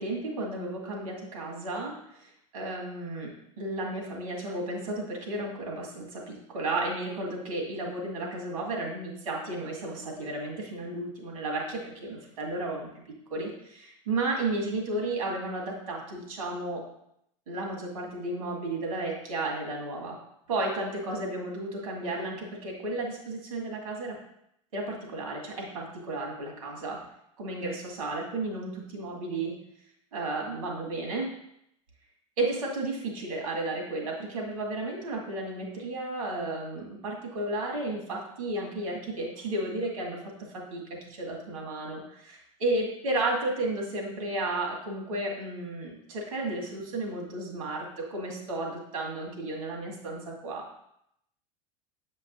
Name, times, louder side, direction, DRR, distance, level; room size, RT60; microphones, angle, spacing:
voice 1, 0.0-12.9 13.3-16.8 17.5-20.2 20.5-24.2 24.7-27.0 27.4-29.6 30.1-31.3 32.4-50.7, right 2 dB, 80° right, -1 dB, 2.1 m, -33 dB
7.8 x 5.3 x 2.7 m, 0.75 s
hypercardioid pair, 85°, 18 cm